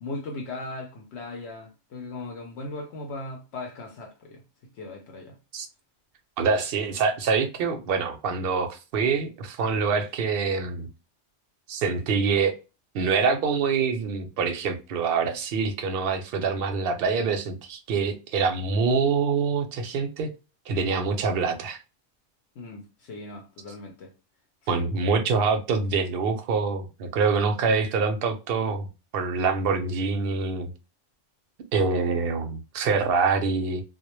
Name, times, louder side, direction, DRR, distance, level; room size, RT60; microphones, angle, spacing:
voice 1, 0.0-4.4 4.7-5.4 22.6-24.1 24.7-24.8, left 2 dB, 70° left, 0.8 m, -38 dB
voice 2, 6.4-10.9 11.7-12.5 12.9-20.3 20.7-21.8 24.7-28.9 29.1-30.7 31.7-33.8, right 5 dB, 60° right, 0.7 m, -25 dB
2.1 x 2.1 x 2.9 m
omnidirectional pair, 1.2 m